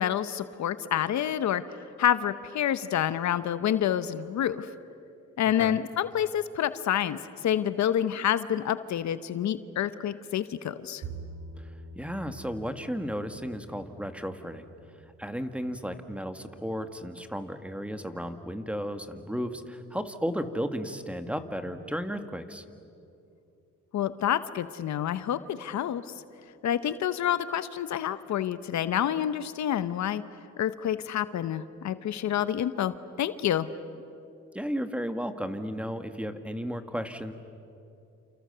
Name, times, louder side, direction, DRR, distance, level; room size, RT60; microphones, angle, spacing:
voice 1, 0.0-1.6 2.0-4.7 5.4-7.2 7.4-11.0 23.9-26.0 26.6-30.2 30.6-33.7, left 10 dB, 65° left, 13 dB, 1.0 m, -28 dB
Bowed string instrument, 11.0-17.3, right 3 dB, 75° right, 3.5 m, -47 dB
voice 2, 11.6-14.7 15.2-22.6 34.5-37.3, equal, 5° right, 8 dB, 1.8 m, -34 dB
29.5 x 28.5 x 6.9 m, 2.7 s
cardioid pair, 90°, 30 cm